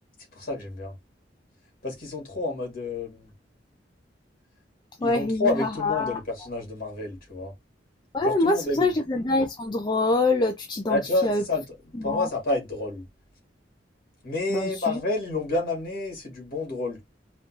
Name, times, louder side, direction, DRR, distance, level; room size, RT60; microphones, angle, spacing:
voice 1, 0.3-1.0 1.8-3.3 5.0-7.5 8.2-8.9 10.9-13.1 14.2-17.0, left 2 dB, 55° left, 2.2 m, -29 dB
voice 2, 5.0-6.2 8.1-11.4 12.0-12.3 14.5-15.0, left 2 dB, 25° left, 0.5 m, -25 dB
4.2 x 2.4 x 2.8 m
head